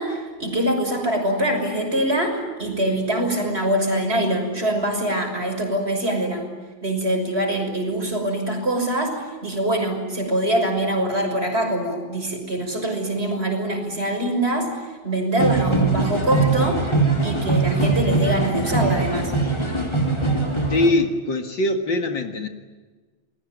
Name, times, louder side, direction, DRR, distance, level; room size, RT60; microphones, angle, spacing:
voice 1, 0.0-6.5 6.8-9.1 9.4-14.7 15.0-16.9 17.2-19.3, right 1 dB, 30° right, 3 dB, 6.4 m, -23 dB
sound 1, 15.4-20.9, right 3 dB, 15° left, 4.0 m, -22 dB
voice 2, 20.7-22.5, left 2 dB, 65° left, 5 dB, 2.5 m, -22 dB
29.0 x 21.5 x 9.4 m, 1.3 s
omnidirectional pair, 2.2 m